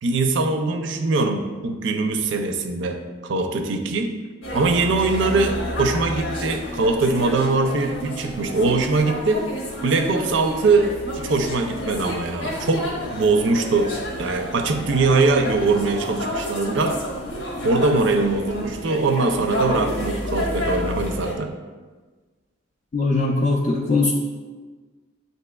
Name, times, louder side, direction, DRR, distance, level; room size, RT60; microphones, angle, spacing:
voice 1, 0.0-4.1 4.5-9.4 9.8-13.9 14.2-17.0 17.6-21.5, right 3 dB, 60° right, 5 dB, 0.4 m, -22 dB
sound 1, 4.4-21.3, left 1 dB, 75° left, 0.9 m, -30 dB
voice 2, 22.9-24.1, left 3 dB, 40° left, -2 dB, 0.4 m, -20 dB
7.6 x 2.7 x 2.3 m, 1.4 s
head